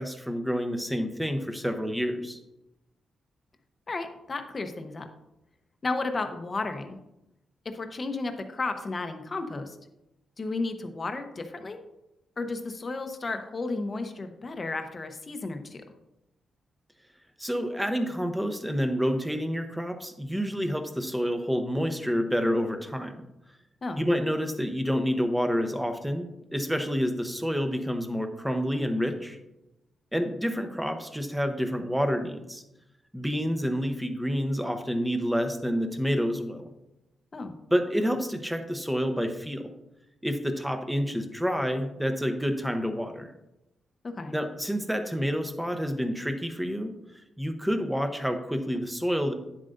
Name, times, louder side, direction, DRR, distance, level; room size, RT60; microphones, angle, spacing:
voice 1, 0.0-2.4 17.4-23.1 24.0-29.4 30.1-32.6 33.1-36.7 37.7-39.7 40.2-43.3 44.3-46.9 47.4-49.3, equal, 5° right, 6 dB, 0.9 m, -28 dB
voice 2, 3.9-5.1 5.8-7.0 7.6-9.8 10.4-11.8 12.4-15.8 23.8-24.0 37.3-37.5 44.1-44.3, left 3 dB, 35° left, 6 dB, 0.9 m, -33 dB
9.8 x 7.5 x 2.6 m, 0.89 s
cardioid pair, 100°, 0 cm